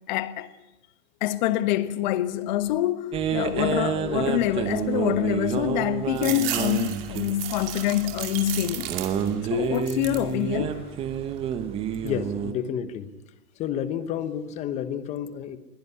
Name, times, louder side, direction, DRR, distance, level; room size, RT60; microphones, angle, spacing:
voice 1, 0.1-0.5 1.2-8.9 9.5-10.8, left 13 dB, 30° left, 1.3 m, -26 dB
sound 1, 3.1-12.5, right 8 dB, 15° right, 1.0 m, -29 dB
sound 2, 6.2-9.4 9.7-10.3 10.8-11.5, right 12 dB, 40° right, 2.4 m, -35 dB
voice 2, 12.0-13.1 13.5-15.6, left 9 dB, 15° left, 1.0 m, -30 dB
22.0 x 17.0 x 9.7 m
hypercardioid pair, 150°, 44 cm